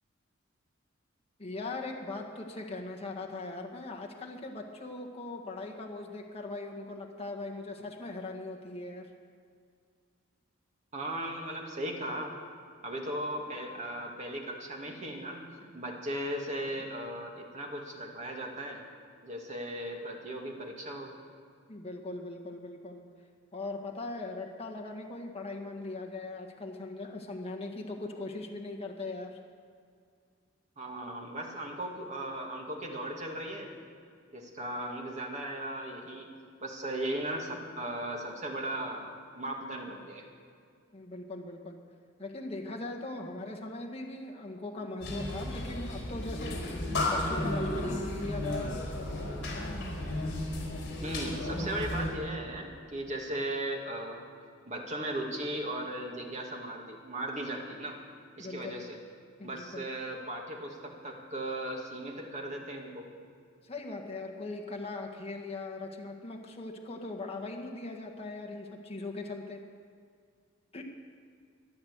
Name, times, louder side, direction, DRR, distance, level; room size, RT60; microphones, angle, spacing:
voice 1, 1.4-9.1 21.7-23.0 23.5-29.4 40.9-41.8 42.2-46.6 46.9-49.1 58.4-58.8 59.4-59.9 63.6-69.6 70.7-70.8, left 2 dB, 30° left, 1 dB, 1.6 m, -40 dB
voice 2, 10.9-12.3 12.8-18.8 19.2-21.1 30.8-33.7 34.3-36.3 36.6-40.3 51.0-54.2 54.7-58.0 58.4-59.0 59.4-63.1, right 1 dB, 35° right, 1 dB, 2.3 m, -37 dB
sound 1, 45.0-52.1, left 1 dB, 60° left, 4.2 m, -33 dB
14.0 x 11.0 x 8.0 m, 2.2 s
head